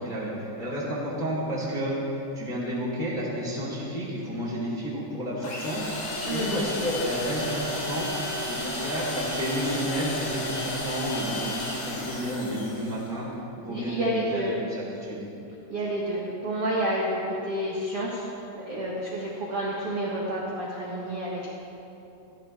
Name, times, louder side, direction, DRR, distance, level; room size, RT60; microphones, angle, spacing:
voice 1, 0.0-5.8 6.3-8.1 8.5-13.3 13.6-15.2, equal, 15° left, -6 dB, 2.1 m, -31 dB
sound 1, 5.4-13.1, left 1 dB, 60° left, 5.0 m, -33 dB
voice 2, 13.7-14.6 15.7-21.5, right 1 dB, 60° right, -5 dB, 1.5 m, -30 dB
15.0 x 13.0 x 4.5 m, 2.9 s
omnidirectional pair, 5.3 m